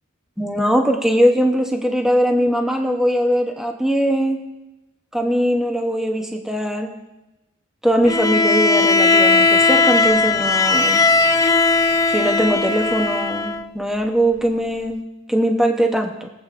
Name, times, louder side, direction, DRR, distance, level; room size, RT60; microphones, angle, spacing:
voice 1, 0.4-4.4 5.1-6.9 7.8-11.0 12.1-15.0 15.3-16.3, equal, ahead, 2 dB, 0.8 m, -20 dB
Bowed string instrument, 8.1-13.7, left 3 dB, 15° left, 0.4 m, -17 dB
21.5 x 8.1 x 2.5 m, 1.0 s
head